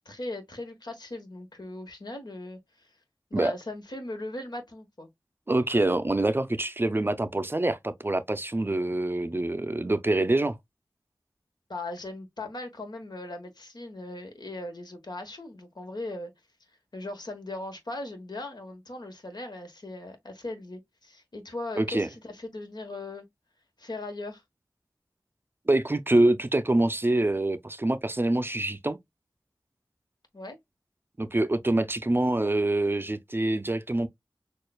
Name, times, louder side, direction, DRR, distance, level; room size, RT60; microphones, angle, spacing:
voice 1, 0.0-2.9 3.3-5.1 11.7-16.3 16.9-23.3 23.8-24.4 30.3-30.6, left 2 dB, 65° left, 1.2 m, -39 dB
voice 2, 5.5-10.6 21.8-22.1 25.7-29.0 31.2-34.1, right 2 dB, 30° right, 0.4 m, -25 dB
6.3 x 2.3 x 2.3 m
wide cardioid pair, 55°, 8 cm